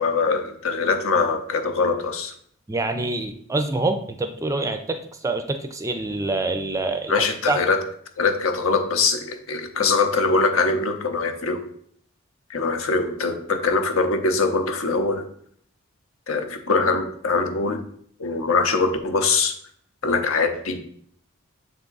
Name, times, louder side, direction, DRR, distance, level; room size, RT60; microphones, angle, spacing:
voice 1, 0.0-2.3 7.1-7.8 8.2-11.6 12.5-15.2 16.3-17.8 18.2-19.5 20.0-20.8, left 4 dB, 70° left, 6 dB, 0.8 m, -22 dB
voice 2, 2.7-7.6, right 2 dB, 15° right, 7 dB, 0.4 m, -26 dB
7.1 x 3.6 x 3.9 m, 0.64 s
head